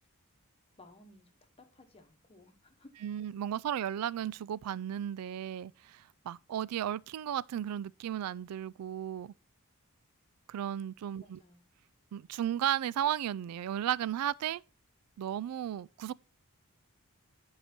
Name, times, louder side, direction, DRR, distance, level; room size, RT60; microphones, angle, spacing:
voice 1, 0.8-2.9 11.2-11.6, left 2 dB, 25° left, 1.1 m, -58 dB
voice 2, 3.0-9.3 10.5-11.4 12.1-14.6 15.2-16.1, right 10 dB, 90° right, 0.3 m, -34 dB
10.0 x 4.8 x 4.3 m
head